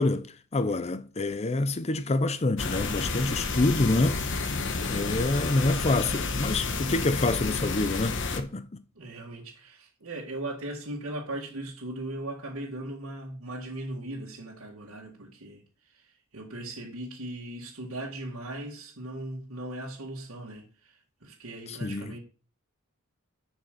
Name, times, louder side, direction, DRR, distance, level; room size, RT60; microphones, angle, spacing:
voice 1, 0.0-4.4 4.8-8.8 21.7-22.1, left 2 dB, 30° left, 0.6 m, -27 dB
sound 1, 2.6-8.4, left 3 dB, 60° left, 1.3 m, -30 dB
voice 2, 9.0-22.2, right 1 dB, 80° right, 2.0 m, -38 dB
7.3 x 6.2 x 6.7 m
head